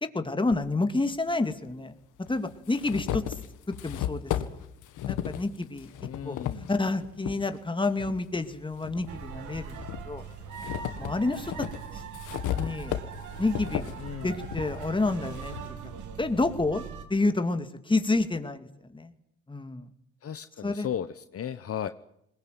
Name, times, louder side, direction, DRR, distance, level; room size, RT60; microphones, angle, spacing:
voice 1, 0.0-1.9 2.3-3.2 3.7-4.6 5.0-5.9 6.2-6.4 6.7-9.8 10.1-10.2 11.0-11.7 12.5-12.9 13.4-13.9 14.2-15.5 16.2-16.8 17.1-19.1 19.5-19.9 20.6-20.9, left 2 dB, 15° left, 8 dB, 2.4 m, -29 dB
sound 1, 0.5-0.6 1.7-1.8 2.3-7.4 7.9-9.1 9.5-15.7, left 11 dB, 85° left, 1.8 m, -35 dB
voice 2, 6.0-6.7 14.0-14.4 20.2-21.9, left 9 dB, 50° left, 11 dB, 1.0 m, -35 dB
sound 2, 9.1-17.0, right 6 dB, 80° right, 2.8 m, -41 dB
21.0 x 19.5 x 9.4 m, 0.77 s
cardioid pair, 90°, 30 cm